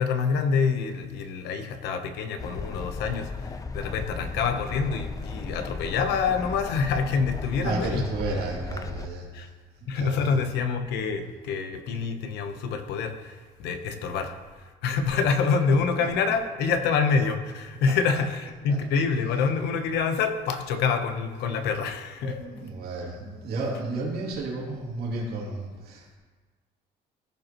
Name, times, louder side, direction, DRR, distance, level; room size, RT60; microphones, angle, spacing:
voice 1, 0.0-8.0 9.3-9.5 9.9-22.4, left 5 dB, 80° left, 7 dB, 0.9 m, -26 dB
sound 1, 2.4-9.1, left 4 dB, 20° left, 0.5 m, -36 dB
voice 2, 7.6-9.5 9.9-10.5 18.7-18.8 22.2-26.2, right 3 dB, 65° right, -4 dB, 2.8 m, -32 dB
15.0 x 5.2 x 3.0 m, 1.4 s
cardioid pair, 110°, 17 cm